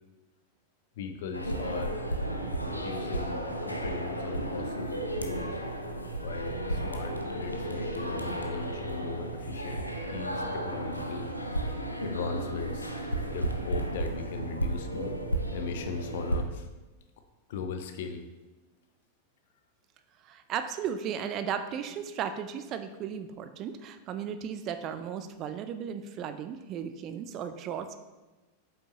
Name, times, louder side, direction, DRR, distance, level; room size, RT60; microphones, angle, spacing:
voice 1, 1.0-2.0 2.6-5.6 6.2-13.0 13.3-15.1 15.5-16.7 17.5-18.2, left 4 dB, 55° left, 6 dB, 0.7 m, -38 dB
sound 1, 1.3-16.4, right 1 dB, 85° left, 0.6 m, -33 dB
voice 2, 20.2-27.9, right 8 dB, 35° right, 9 dB, 0.5 m, -35 dB
8.1 x 5.5 x 2.9 m, 1.2 s
figure-of-eight pair, 90°, 0 cm